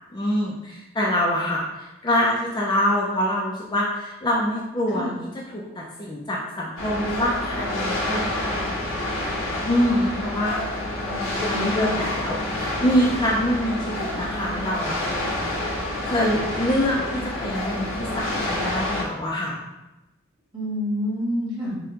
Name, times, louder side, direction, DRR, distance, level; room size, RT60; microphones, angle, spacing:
voice 1, 0.1-8.8 9.1-9.4 9.7-10.6 11.4-15.7 16.0-19.6, equal, 20° left, -4 dB, 0.4 m, -25 dB
voice 2, 4.9-5.2 11.1-12.1 20.5-21.8, equal, 25° right, -7 dB, 1.3 m, -29 dB
sound 1, 6.8-19.0, left 1 dB, 85° left, 1.0 m, -28 dB
4.9 x 2.2 x 2.8 m, 0.99 s
head